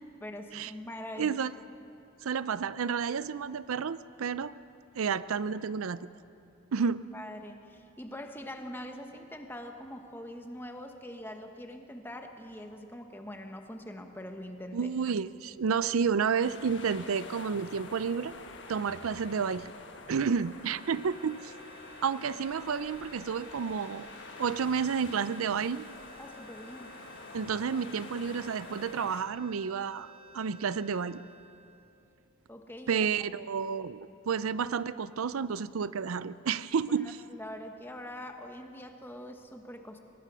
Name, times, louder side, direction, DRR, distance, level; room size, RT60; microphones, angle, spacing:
voice 1, 0.2-1.4 7.1-14.9 26.2-26.9 32.5-33.1 34.1-34.2 37.0-40.0, left 1 dB, 10° left, 5 dB, 1.2 m, -43 dB
voice 2, 1.2-1.5 2.2-4.5 5.0-6.0 6.7-7.0 14.7-18.3 18.7-19.7 20.1-21.5 22.0-24.1 24.4-25.9 27.3-30.1 30.3-31.2 32.9-37.2, right 6 dB, 80° right, 16 dB, 0.5 m, -30 dB
sound 1, 16.4-29.2, left 3 dB, 55° left, 1.5 m, -47 dB
sound 2, 20.4-32.6, right 3 dB, 30° right, 0.8 m, -55 dB
23.0 x 19.0 x 6.2 m, 2.7 s
head